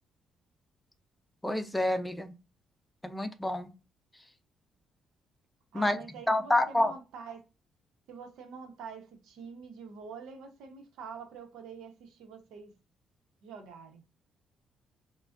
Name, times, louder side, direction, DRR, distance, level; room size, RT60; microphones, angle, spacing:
voice 1, 1.4-2.3 3.0-3.7 5.7-6.0 6.3-6.9, left 1 dB, 10° left, 0.6 m, -28 dB
voice 2, 5.7-7.4 8.1-12.7 13.4-14.0, right 5 dB, 85° right, 1.0 m, -46 dB
4.8 x 2.4 x 2.6 m
cardioid pair, 90°, 0 cm